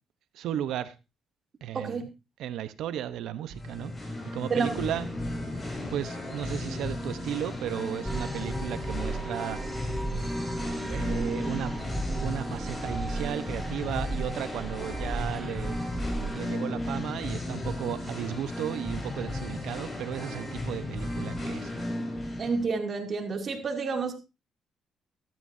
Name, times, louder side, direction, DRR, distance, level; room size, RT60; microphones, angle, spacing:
voice 1, 0.3-0.9 1.6-2.1 2.4-3.9 4.3-5.1 5.9-9.6 10.8-11.8 12.2-15.8 16.3-21.7, right 11 dB, 80° right, 0.9 m, -34 dB
Singing, 3.5-22.6, left 1 dB, 25° left, 5.6 m, -35 dB
sound 1, 8.1-16.5, right 2 dB, 10° right, 2.4 m, -35 dB
voice 2, 22.4-24.2, right 4 dB, 45° right, 2.7 m, -29 dB
14.5 x 12.0 x 2.7 m
cardioid pair, 90°, 0 cm